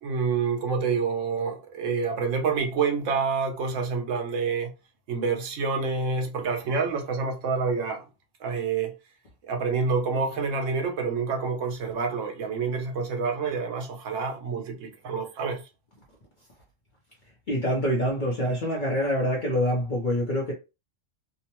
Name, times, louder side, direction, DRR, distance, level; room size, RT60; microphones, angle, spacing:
voice 1, 0.0-4.7 5.1-8.0 8.4-8.9 9.4-15.6, right 5 dB, 90° right, 1.1 m, -27 dB
voice 2, 17.5-20.5, equal, 50° left, 0.7 m, -25 dB
2.9 x 2.1 x 2.9 m
omnidirectional pair, 1.3 m